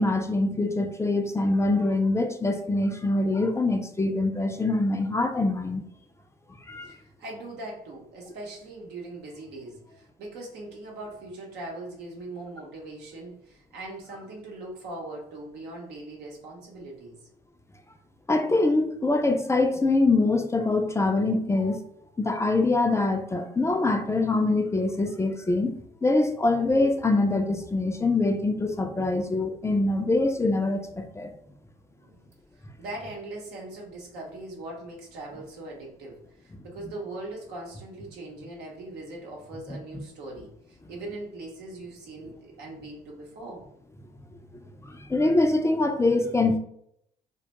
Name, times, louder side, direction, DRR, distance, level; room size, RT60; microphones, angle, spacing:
voice 1, 0.0-5.8 6.7-7.0 18.3-21.8 22.2-25.7 26.0-31.3 39.7-39.8 44.9-46.6, left 2 dB, 15° left, 5 dB, 0.4 m, -24 dB
voice 2, 6.8-17.2 32.0-32.3 32.8-43.6, right 2 dB, 75° right, -1 dB, 0.8 m, -40 dB
2.2 x 2.2 x 2.8 m, 0.71 s
hypercardioid pair, 50°, 17 cm